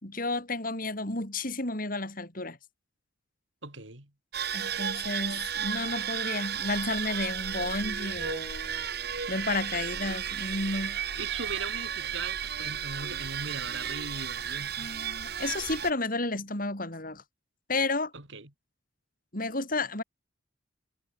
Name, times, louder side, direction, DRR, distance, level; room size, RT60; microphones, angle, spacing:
voice 1, 0.0-2.6 4.5-8.9 9.3-11.0 14.8-17.2 17.7-18.1 19.3-20.0, left 2 dB, 45° left, 4.8 m, -32 dB
voice 2, 3.6-4.1 11.2-14.9 18.1-18.5, right 4 dB, 70° right, 4.5 m, -39 dB
sound 1, 4.3-15.9, right 8 dB, 55° right, 1.8 m, -34 dB
head